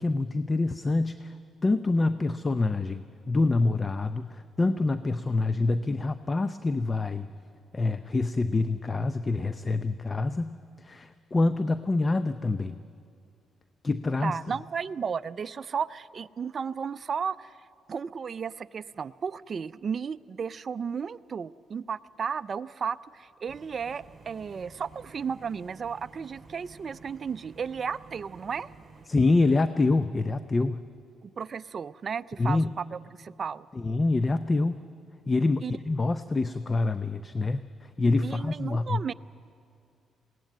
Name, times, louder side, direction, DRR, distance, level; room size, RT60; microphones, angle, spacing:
voice 1, 0.0-1.4 1.6-7.3 7.7-12.8 13.8-14.4 29.1-30.9 32.4-32.7 33.7-34.8 35.3-39.0, left 3 dB, 25° left, 12 dB, 0.6 m, -26 dB
voice 2, 14.2-17.5 17.9-28.7 31.2-33.7 35.6-35.7 38.2-39.1, right 6 dB, 45° right, 14 dB, 0.4 m, -34 dB
sound 1, 23.5-29.1, right 4 dB, 25° right, 4.4 m, -52 dB
20.5 x 17.0 x 9.2 m, 2.5 s
cardioid pair, 90°, 0 cm